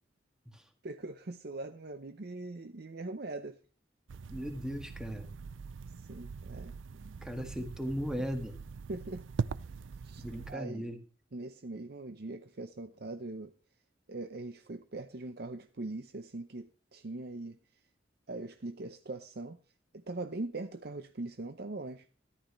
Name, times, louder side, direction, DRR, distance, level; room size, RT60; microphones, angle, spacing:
voice 1, 0.8-3.6 6.1-7.1 8.9-9.2 10.0-10.2 10.5-10.9 11.3-13.5 14.1-17.6 18.3-19.6 20.1-22.1, right 2 dB, 55° right, 8 dB, 0.7 m, -41 dB
sound 1, 4.1-10.5, right 5 dB, 85° right, 0.4 m, -42 dB
voice 2, 4.3-5.3 7.2-8.5 10.2-11.0, equal, 5° right, 5 dB, 1.7 m, -37 dB
14.0 x 11.5 x 3.2 m, 0.35 s
head